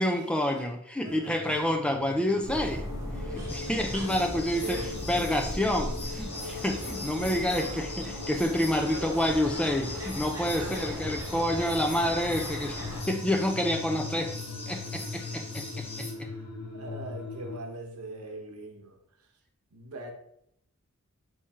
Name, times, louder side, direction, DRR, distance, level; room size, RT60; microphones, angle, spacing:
voice 1, 0.0-2.9 3.3-4.8 5.1-14.4 14.7-16.3, left 1 dB, 5° left, 4 dB, 0.4 m, -28 dB
voice 2, 1.0-1.6 3.7-3.9 4.6-5.0 8.9-9.1 10.6-11.2 16.3-16.4 16.7-19.0 19.7-20.1, right 2 dB, 85° right, 4 dB, 0.9 m, -41 dB
sound 1, 1.1-17.6, left 3 dB, 85° left, 0.8 m, -41 dB
sound 2, 2.4-13.0, equal, 15° right, 1.1 m, -38 dB
sound 3, 3.5-16.1, left 2 dB, 25° left, 0.8 m, -42 dB
3.5 x 3.2 x 4.2 m, 0.72 s
head